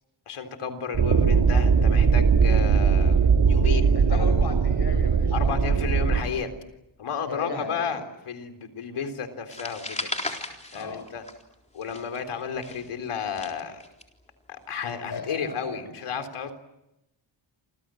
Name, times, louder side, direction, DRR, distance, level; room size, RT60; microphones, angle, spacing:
voice 1, 0.3-4.4 5.3-6.5 7.0-10.1 10.7-11.2 11.7-13.8 14.5-16.5, left 6 dB, 85° left, 7 dB, 3.8 m, -33 dB
sound 1, 0.9-6.2, right 5 dB, 60° right, 2.7 m, -20 dB
voice 2, 3.9-6.0 7.3-8.0 10.7-11.1 15.1-15.8, left 4 dB, 50° left, 10 dB, 6.1 m, -36 dB
sound 2, 9.5-11.5 11.8-14.0, left 2 dB, 15° left, 3.9 m, -35 dB
29.0 x 26.5 x 7.7 m, 0.90 s
wide cardioid pair, 150°, 49 cm